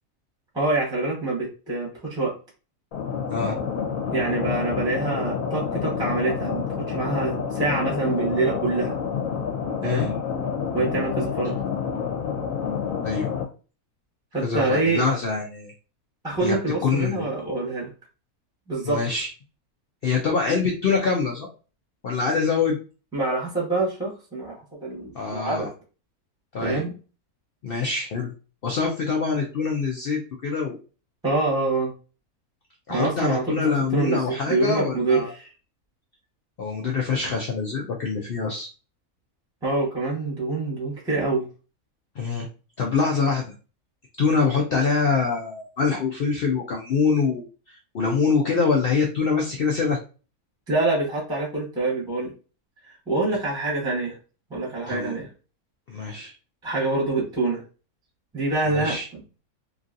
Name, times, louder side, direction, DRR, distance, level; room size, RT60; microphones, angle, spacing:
voice 1, 0.5-2.3 4.1-8.9 9.8-10.1 10.7-11.5 14.3-15.0 16.2-17.9 18.7-19.0 23.1-24.5 24.8-25.7 26.6-26.9 31.2-31.9 32.9-35.5 39.6-41.4 50.7-52.3 53.1-54.2 54.5-55.3 56.6-57.6 58.3-59.4, right 3 dB, 5° right, -4 dB, 0.9 m, -25 dB
sound 1, 2.9-13.4, left 7 dB, 65° left, 1.0 m, -28 dB
voice 2, 14.4-15.7 16.4-17.3 18.8-19.3 20.0-21.5 22.0-22.8 25.1-25.7 26.5-26.8 27.6-28.3 28.6-30.8 32.9-35.3 36.6-38.7 42.2-42.5 42.8-43.5 44.2-50.0 54.9-55.1 55.9-56.3 58.6-59.1, left 5 dB, 85° left, 1 dB, 0.5 m, -24 dB
3.0 x 2.6 x 2.5 m, 0.35 s
omnidirectional pair, 1.6 m